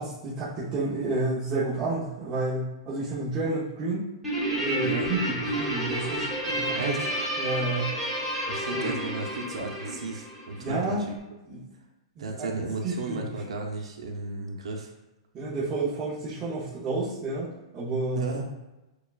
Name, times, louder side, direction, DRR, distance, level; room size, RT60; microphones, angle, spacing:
voice 1, 0.0-4.1 4.6-6.9 7.4-7.9 8.7-8.8 10.6-11.0 11.5-11.6 12.2-12.5 12.8-13.3 15.3-17.5 17.7-18.3, right 2 dB, 20° right, -9 dB, 0.8 m, -30 dB
Guitar, 4.2-10.9, right 1 dB, 5° right, 1.2 m, -30 dB
voice 2, 6.7-7.1 8.5-11.2 12.2-14.9 18.2-18.5, right 3 dB, 85° right, 1 dB, 0.7 m, -34 dB
6.7 x 2.3 x 2.4 m, 1.0 s
hypercardioid pair, 155°, 3 cm